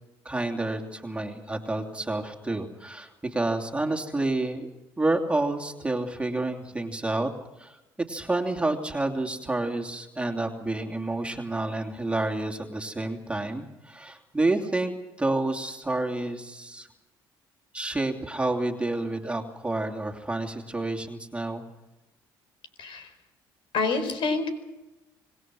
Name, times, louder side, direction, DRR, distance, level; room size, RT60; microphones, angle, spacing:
voice 1, 0.2-7.3 7.6-7.8 8.1-16.9 17.7-21.6, right 2 dB, 15° right, 2 dB, 2.8 m, -29 dB
voice 2, 23.7-24.5, left 4 dB, 70° left, 9 dB, 4.7 m, -27 dB
26.0 x 20.0 x 6.3 m, 1.0 s
cardioid pair, 85°, 9 cm